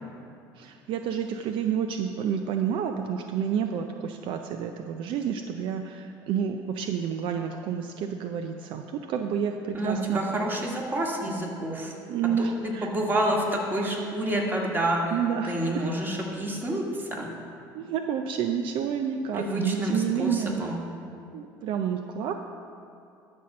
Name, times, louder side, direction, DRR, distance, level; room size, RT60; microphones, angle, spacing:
voice 1, 0.5-10.2 12.1-12.9 15.1-15.9 17.7-20.7 21.3-22.3, right 7 dB, 65° right, 6 dB, 0.5 m, -29 dB
voice 2, 9.7-11.9 12.4-15.0 15.5-17.3 19.3-20.8, right 1 dB, 20° right, -1 dB, 1.9 m, -28 dB
12.5 x 4.3 x 6.3 m, 2.6 s
supercardioid pair, 100°, 9 cm